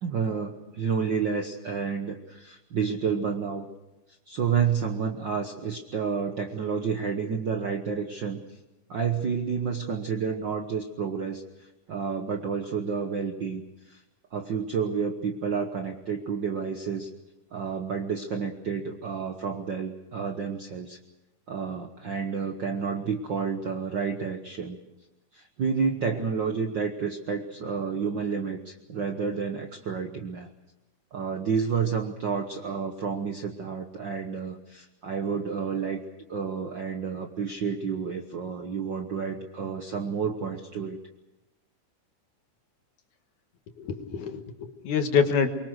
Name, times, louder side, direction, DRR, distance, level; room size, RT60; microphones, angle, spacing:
voice 1, 0.0-3.7 4.3-8.4 8.9-14.0 14.3-17.1 17.5-21.0 21.5-24.8 25.3-30.5 31.1-36.0 36.3-41.0, right 6 dB, 60° right, 4 dB, 1.2 m, -30 dB
voice 2, 43.8-45.5, left 6 dB, 75° left, 6 dB, 2.9 m, -26 dB
24.5 x 23.0 x 6.5 m, 0.99 s
omnidirectional pair, 3.7 m